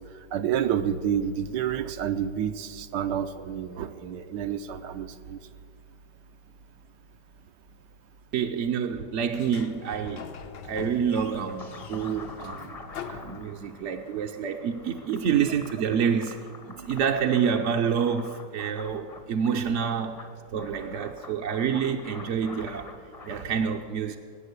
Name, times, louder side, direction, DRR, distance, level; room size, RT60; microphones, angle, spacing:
voice 1, 0.3-5.4 16.7-16.9 19.5-19.6, right 9 dB, 80° right, 1.3 m, -29 dB
voice 2, 8.3-10.3 10.6-12.8 13.1-16.4 16.6-22.9 23.2-24.2, right 7 dB, 60° right, 0.8 m, -28 dB
Sliding door, 9.3-14.0, left 6 dB, 70° left, 1.4 m, -42 dB
sound 1, 11.6-23.4, left 3 dB, 30° left, 0.7 m, -46 dB
18.0 x 8.6 x 8.1 m
omnidirectional pair, 1.9 m